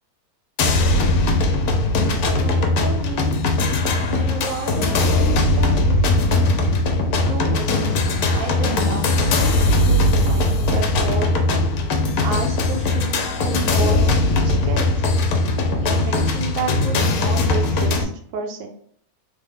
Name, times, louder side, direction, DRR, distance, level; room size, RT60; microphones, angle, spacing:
sound 1, 0.6-18.0, left 2 dB, 85° left, 1.1 m, -19 dB
voice 1, 2.2-3.4 4.0-6.5 7.2-11.3 12.2-15.0 15.8-18.7, right 4 dB, 70° right, 3 dB, 0.9 m, -31 dB
3.2 x 2.0 x 3.5 m, 0.62 s
omnidirectional pair, 1.6 m